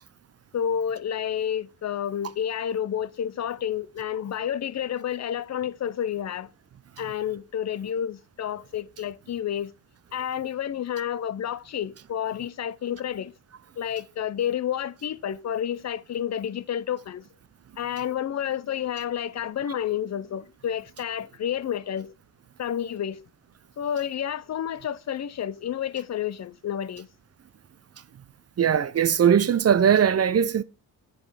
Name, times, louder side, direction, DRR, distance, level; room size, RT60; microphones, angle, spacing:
voice 1, 0.5-6.5 7.0-9.7 10.1-13.3 13.8-17.2 17.8-22.1 22.6-23.2 23.8-27.1, left 9 dB, 45° left, 0.6 m, -30 dB
voice 2, 28.6-30.6, right 8 dB, 40° right, 0.6 m, -20 dB
7.6 x 5.3 x 4.7 m
supercardioid pair, 55°, 39 cm